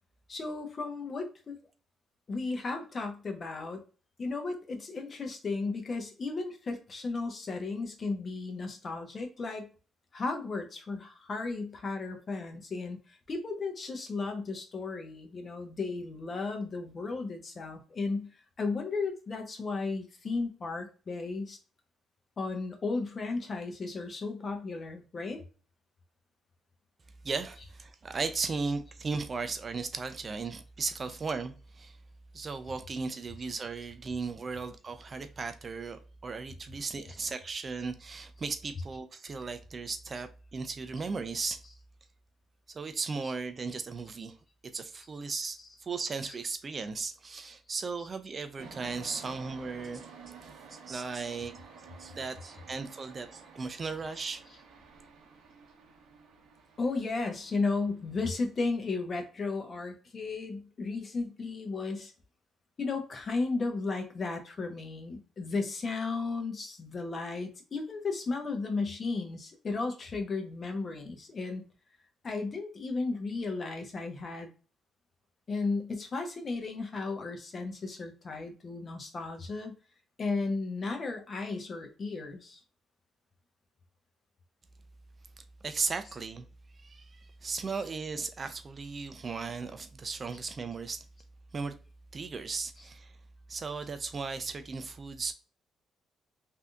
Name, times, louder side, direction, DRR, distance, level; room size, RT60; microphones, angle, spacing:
voice 1, 0.3-1.6 2.3-3.8 4.2-9.7 10.1-21.6 22.4-25.4 56.8-62.1 62.8-71.6 72.2-74.5 75.5-79.7 80.2-82.6, left 3 dB, 40° left, 0.9 m, -34 dB
voice 2, 27.2-32.0 32.3-41.6 42.7-44.4 44.7-50.0 50.7-51.5 52.0-54.4 85.6-86.4 86.8-91.0 91.5-91.8 92.1-93.2 93.5-95.3, right 4 dB, 40° right, 0.4 m, -36 dB
sound 1, 48.6-58.9, right 5 dB, 80° right, 0.8 m, -52 dB
3.4 x 2.7 x 2.3 m
cardioid pair, 90°, 0 cm